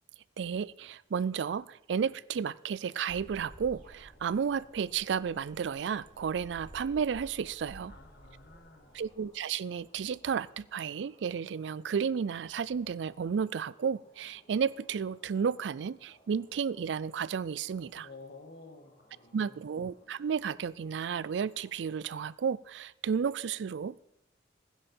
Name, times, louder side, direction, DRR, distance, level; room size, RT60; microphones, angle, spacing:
voice 1, 0.4-7.9 8.9-18.1 19.3-24.0, right 6 dB, 75° right, 21 dB, 0.4 m, -32 dB
sound 1, 2.8-21.9, equal, 30° left, 2.4 m, -64 dB
sound 2, 3.1-9.2, equal, 45° right, 4.9 m, -54 dB
voice 2, 7.9-9.0 17.9-19.7, left 3 dB, 65° left, 6 dB, 1.7 m, -52 dB
16.0 x 10.0 x 4.4 m, 0.81 s
head